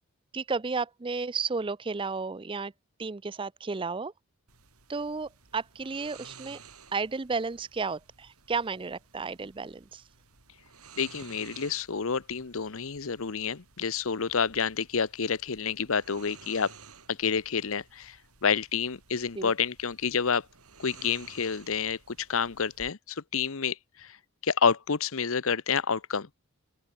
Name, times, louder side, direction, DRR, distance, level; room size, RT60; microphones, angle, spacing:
voice 1, 0.3-2.7 3.0-4.1 4.9-6.6 6.9-10.0 19.4-19.5, right 4 dB, 25° right, 0.5 m, -33 dB
sound 1, 4.5-22.9, right 5 dB, 85° right, 6.5 m, -54 dB
voice 2, 11.0-16.7 17.1-20.5 20.8-24.2 24.4-26.3, left 6 dB, 65° left, 0.9 m, -29 dB
open air
head